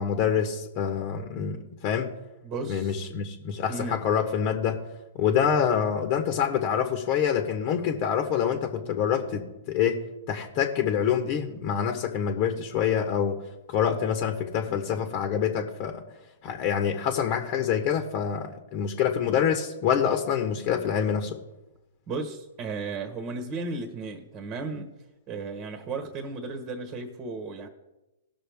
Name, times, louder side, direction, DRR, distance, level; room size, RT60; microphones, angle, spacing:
voice 1, 0.0-2.1 2.7-4.8 5.2-13.4 13.7-16.0 16.4-21.4, left 8 dB, 40° left, 5 dB, 1.3 m, -26 dB
voice 2, 2.4-3.2 3.7-4.0 22.1-24.9 25.3-27.7, right 3 dB, 30° right, 5 dB, 1.4 m, -35 dB
17.5 x 6.2 x 3.5 m, 0.99 s
hypercardioid pair, 125°, 0 cm